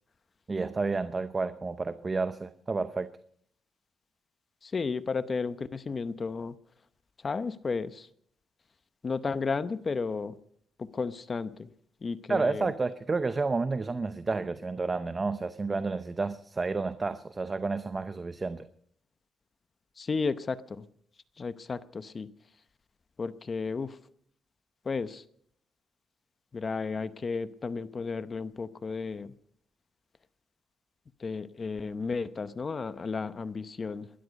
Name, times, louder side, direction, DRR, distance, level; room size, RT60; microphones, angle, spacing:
voice 1, 0.5-3.1 12.3-18.7, right 3 dB, 30° right, 0.7 m, -30 dB
voice 2, 4.6-6.5 7.2-8.1 9.0-10.4 10.8-11.7 12.0-12.7 20.0-20.9 21.4-22.3 23.2-24.0 24.8-25.2 26.5-29.3 31.2-34.1, left 4 dB, 35° left, 0.8 m, -33 dB
20.5 x 13.0 x 5.2 m
cardioid pair, 90°, 0 cm